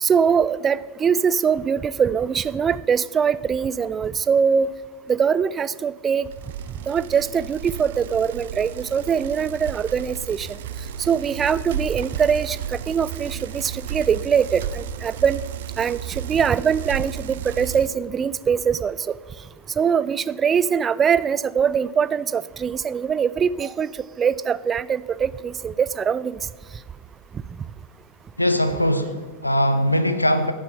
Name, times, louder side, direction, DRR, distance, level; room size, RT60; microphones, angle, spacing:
voice 1, 0.0-4.7 5.1-6.3 6.9-10.6 11.0-15.4 15.8-19.1 19.8-23.9 24.2-26.4, right 7 dB, 20° right, 18 dB, 0.5 m, -22 dB
Bicycle, 6.3-18.0, right 8 dB, 55° right, 0.8 m, -33 dB
voice 2, 28.4-30.5, equal, 85° left, 9 dB, 0.9 m, -21 dB
15.5 x 10.5 x 5.5 m, 1.3 s
figure-of-eight pair, 90°, 0 cm